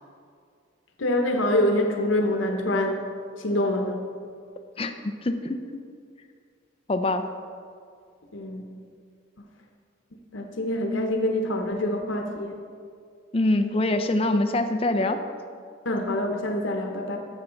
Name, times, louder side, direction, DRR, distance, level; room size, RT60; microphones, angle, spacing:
voice 1, 1.0-3.0 3.4-4.2 8.3-8.8 10.3-12.6 15.8-17.2, left 1 dB, 85° left, 3 dB, 0.9 m, -25 dB
voice 2, 5.2-5.6 6.9-7.3 13.3-15.2, left 2 dB, 30° left, 8 dB, 0.5 m, -24 dB
12.5 x 7.2 x 3.9 m, 2.2 s
head